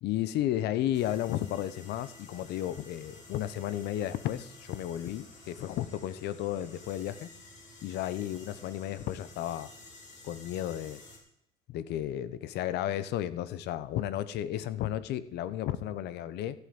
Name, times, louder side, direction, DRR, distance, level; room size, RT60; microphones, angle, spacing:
voice 1, 0.0-7.3 7.8-9.7 10.2-11.0 11.7-16.6, left 12 dB, 80° left, 15 dB, 0.9 m, -33 dB
sound 1, 0.9-11.2, left 2 dB, 45° left, 3.6 m, -52 dB
14.0 x 8.2 x 5.3 m, 0.74 s
cardioid pair, 110°, 17 cm